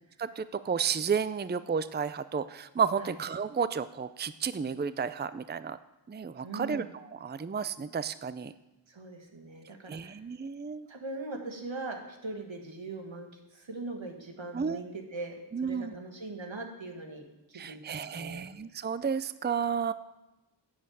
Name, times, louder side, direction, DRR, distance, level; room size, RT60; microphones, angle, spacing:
voice 1, 0.2-5.8 6.1-8.5 9.9-10.9 14.5-14.8 15.5-15.9 17.5-19.9, right 6 dB, 25° right, 14 dB, 0.5 m, -32 dB
voice 2, 6.4-6.9 8.9-10.2 10.9-17.3 17.5-18.4, right 2 dB, 90° right, 3 dB, 1.9 m, -41 dB
11.0 x 6.4 x 8.8 m, 1.0 s
wide cardioid pair, 45°, 45 cm